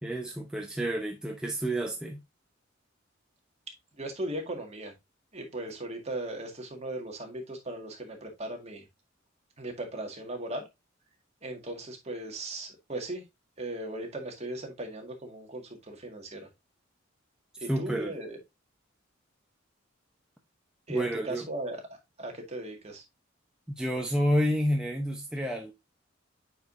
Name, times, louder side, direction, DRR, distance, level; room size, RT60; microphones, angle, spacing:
voice 1, 0.0-2.2 17.7-18.1 20.9-21.5 23.8-25.7, equal, 5° right, 0.8 m, -29 dB
voice 2, 4.0-4.9 5.3-8.9 9.6-10.6 11.4-13.2 13.6-16.5 17.6-18.4 20.9-21.8 22.2-23.0, right 1 dB, 35° right, 1.9 m, -37 dB
8.6 x 4.9 x 2.6 m
head